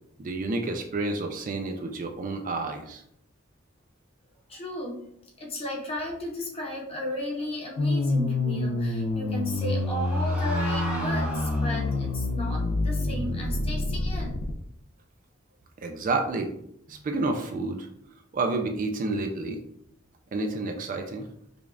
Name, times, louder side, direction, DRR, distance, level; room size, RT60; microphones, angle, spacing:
voice 1, 0.2-3.0 15.8-16.5 16.9-17.9 18.3-19.6 20.3-21.3, right 3 dB, 40° right, 5 dB, 0.3 m, -29 dB
voice 2, 4.5-5.0 5.4-14.3, equal, 30° left, -1 dB, 0.9 m, -34 dB
sound 1, 7.8-14.5, left 2 dB, 85° left, 0.4 m, -27 dB
sound 2, 9.2-12.2, equal, 5° right, 0.8 m, -36 dB
5.0 x 2.3 x 2.4 m, 0.74 s
head